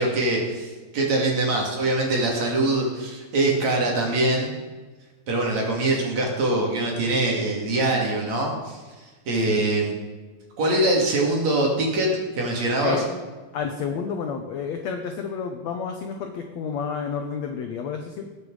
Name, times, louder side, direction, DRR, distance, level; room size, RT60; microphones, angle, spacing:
voice 1, 0.0-4.5 5.3-8.8 9.3-9.9 10.6-12.1 12.4-13.0, right 2 dB, 50° right, -1 dB, 3.6 m, -23 dB
voice 2, 9.3-9.7 12.8-13.0 13.5-18.2, left 6 dB, 75° left, 4 dB, 1.6 m, -30 dB
20.0 x 8.4 x 4.9 m, 1.3 s
omnidirectional pair, 4.5 m